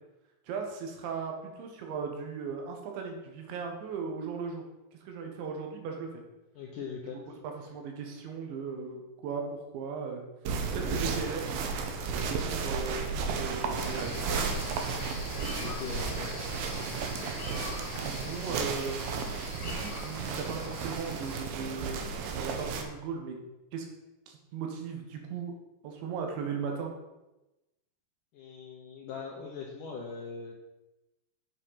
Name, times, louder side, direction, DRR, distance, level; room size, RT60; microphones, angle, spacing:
voice 1, 0.5-4.6 4.9-6.2 7.4-10.2 10.7-11.5 12.2-14.2 18.0-19.0 19.5-22.1 22.4-23.4 23.7-23.9 24.3-25.5 25.8-26.9, right 5 dB, 85° right, 2 dB, 3.9 m, -37 dB
voice 2, 6.6-7.2 15.6-16.3 28.3-30.5, left 5 dB, 75° left, -1 dB, 1.9 m, -40 dB
sound 1, 10.5-22.8, right 5 dB, 70° right, 2.3 m, -34 dB
sound 2, 13.8-21.4, left 2 dB, 45° left, 2.4 m, -43 dB
7.9 x 7.5 x 5.8 m, 1.0 s
omnidirectional pair, 5.1 m